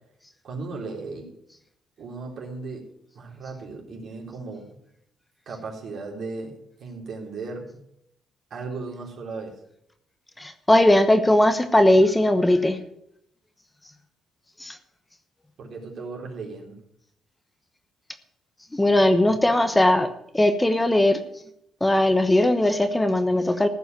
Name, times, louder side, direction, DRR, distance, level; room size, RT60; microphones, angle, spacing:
voice 1, 0.4-1.3 2.0-2.8 3.1-4.7 5.5-7.8 8.5-9.6 15.6-16.8, right 3 dB, 60° right, 0 dB, 3.7 m, -36 dB
voice 2, 10.4-12.8 14.6-14.8 18.7-21.2 21.8-23.7, left 1 dB, 10° left, 8 dB, 1.1 m, -19 dB
15.0 x 5.5 x 9.2 m, 0.76 s
cardioid pair, 90°, 0 cm